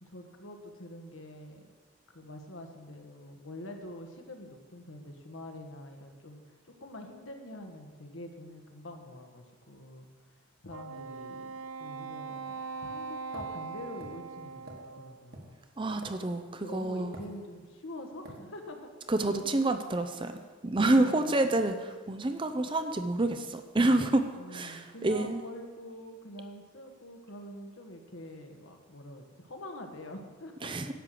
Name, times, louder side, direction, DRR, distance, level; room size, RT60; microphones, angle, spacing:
voice 1, 0.0-1.7 2.1-15.6 16.6-18.9 19.3-19.8 20.8-21.5 24.3-30.8, left 1 dB, 75° left, 4 dB, 1.5 m, -45 dB
Wind instrument woodwind instrument, 10.7-15.3, right 5 dB, 85° right, 0.5 m, -41 dB
sound 1, 13.3-16.6 17.1-17.8 18.2-18.5, right 2 dB, 50° right, 1.6 m, -49 dB
voice 2, 15.8-17.1 19.1-20.3 20.6-25.4 30.6-30.9, right 2 dB, 25° right, 8 dB, 0.6 m, -28 dB
11.0 x 6.5 x 7.6 m, 1.5 s
head